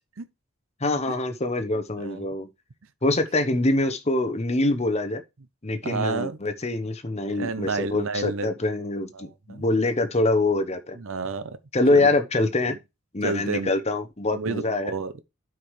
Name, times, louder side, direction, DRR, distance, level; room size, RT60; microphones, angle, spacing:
voice 1, 0.8-2.5 3.0-5.2 5.6-11.0 11.7-12.8 13.1-14.9, left 2 dB, 30° left, 0.9 m, -24 dB
voice 2, 5.8-6.4 7.4-8.5 9.1-9.6 10.9-11.6 11.9-12.1 13.2-13.7 14.3-15.2, right 4 dB, 60° right, 0.7 m, -30 dB
12.0 x 4.8 x 3.2 m
head